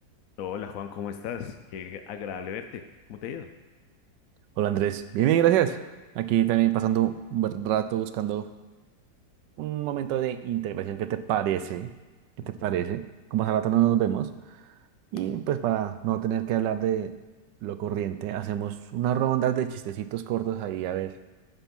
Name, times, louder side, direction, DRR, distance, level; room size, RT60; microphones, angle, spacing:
voice 1, 0.4-2.8 3.1-3.5 12.6-12.8, left 8 dB, 65° left, 7 dB, 0.9 m, -36 dB
voice 2, 4.6-5.8 6.1-8.5 9.6-11.9 12.5-13.0 13.3-14.3 15.1-17.1 17.6-21.1, right 11 dB, 80° right, 12 dB, 1.3 m, -26 dB
11.5 x 5.9 x 5.3 m, 1.3 s
omnidirectional pair, 1.9 m